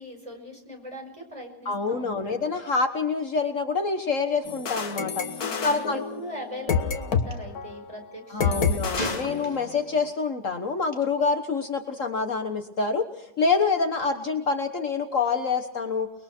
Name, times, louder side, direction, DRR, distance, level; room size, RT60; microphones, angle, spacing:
voice 1, 0.0-2.5 5.3-9.3, equal, 20° right, 2 dB, 5.5 m, -41 dB
voice 2, 1.6-5.2 5.6-6.0 8.3-16.1, left 4 dB, 55° left, 6 dB, 1.7 m, -26 dB
sound 1, 4.5-7.3 7.6-7.8 8.4-9.9, left 6 dB, 70° left, 1.9 m, -28 dB
Gunshot gunfire, 7.2-7.4 9.0-10.0 10.8-11.0, left 1 dB, 25° left, 2.3 m, -35 dB
30.0 x 21.5 x 4.5 m, 0.81 s
omnidirectional pair, 1.7 m